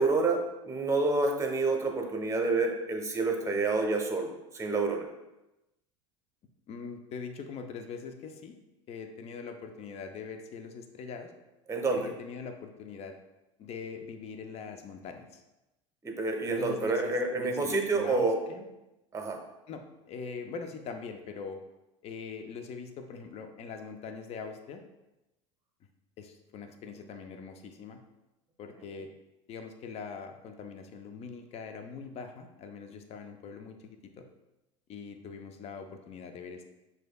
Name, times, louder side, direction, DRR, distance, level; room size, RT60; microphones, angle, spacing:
voice 1, 0.0-5.1 11.7-12.1 16.0-18.4 19.1-19.4, right 3 dB, 20° right, 2 dB, 0.8 m, -28 dB
voice 2, 6.7-8.5 8.9-11.3 11.9-13.2 13.6-15.4 16.4-18.7 19.7-21.6 22.0-24.8 26.2-28.0 28.6-29.1 29.5-34.2 34.9-36.6, left 5 dB, 40° left, 6 dB, 0.5 m, -42 dB
6.2 x 2.7 x 2.3 m, 0.97 s
hypercardioid pair, 80°, 16 cm